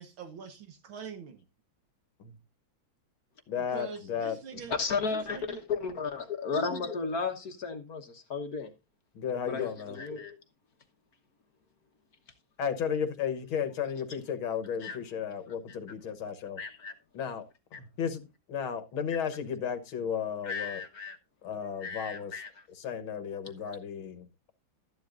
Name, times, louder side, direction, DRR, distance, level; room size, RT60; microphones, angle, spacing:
voice 1, 0.0-1.4 3.6-4.8 5.1-5.7, right 6 dB, 75° right, 2.1 m, -44 dB
voice 2, 3.5-4.4 9.2-10.0 12.6-16.6 17.1-17.4 17.7-18.2 18.5-20.8 21.4-22.4 22.8-24.5, left 7 dB, 80° left, 2.0 m, -34 dB
voice 3, 4.7-8.7 9.5-10.4 14.8-15.0 16.6-16.9 20.4-21.2 21.8-22.7, left 5 dB, 50° left, 1.6 m, -34 dB
13.5 x 10.5 x 2.5 m
omnidirectional pair, 2.2 m